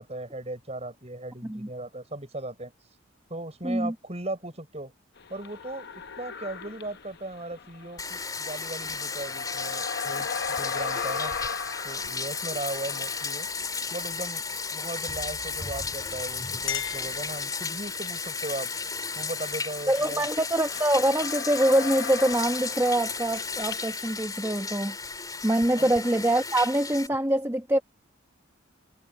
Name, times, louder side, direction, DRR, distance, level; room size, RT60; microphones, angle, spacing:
voice 1, 0.0-2.7 3.3-4.9 5.3-5.9 6.2-11.3 11.8-13.5 13.9-14.4 14.7-18.7 19.2-20.3 25.7-25.9, right 2 dB, 30° right, 5.8 m, -37 dB
voice 2, 3.6-3.9 19.9-24.9 25.4-27.8, right 1 dB, 15° right, 1.1 m, -24 dB
sound 1, 5.2-14.7 15.0-24.2, left 6 dB, 55° left, 0.9 m, -39 dB
Bathtub (filling or washing), 8.0-27.1, left 4 dB, 20° left, 3.6 m, -34 dB
Chink clink, 16.6-18.0, left 10 dB, 80° left, 6.7 m, -37 dB
head